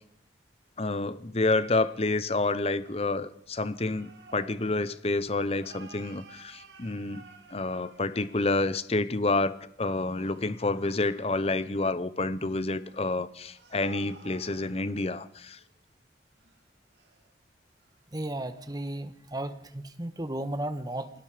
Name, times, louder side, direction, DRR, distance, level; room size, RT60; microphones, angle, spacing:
voice 1, 0.8-7.2 7.5-15.6, left 2 dB, 35° left, 15 dB, 0.9 m, -29 dB
sound 1, 2.8-8.8 9.9-11.7 12.8-15.2 15.6-15.7 16.4-16.6 16.9-17.4 17.8-18.0, right 4 dB, 70° right, 2.7 m, -53 dB
voice 2, 18.1-21.1, right 1 dB, 20° right, 11 dB, 1.4 m, -34 dB
28.0 x 18.5 x 5.1 m, 0.70 s
head